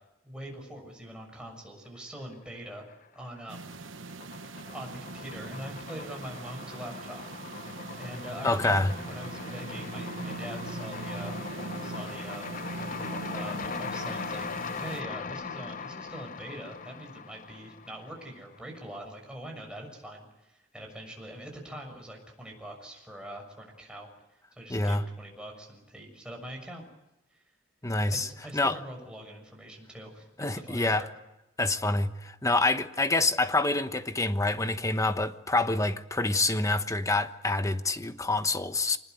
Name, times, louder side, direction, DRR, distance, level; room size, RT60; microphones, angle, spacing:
voice 1, 0.2-2.9 3.1-3.7 4.7-7.2 8.0-11.3 11.8-12.6 13.3-26.8 27.3-27.4 28.1-31.1, right 1 dB, 5° right, 6.7 m, -43 dB
sound 1, 2.3-3.1 3.4-18.5, left 5 dB, 45° left, 0.8 m, -40 dB
sound 2, 3.5-15.0, right 3 dB, 80° right, 0.9 m, -41 dB
voice 2, 8.4-8.9 24.7-25.0 27.8-28.8 30.4-31.1 31.6-39.0, left 2 dB, 15° left, 1.1 m, -27 dB
26.0 x 20.5 x 8.0 m
head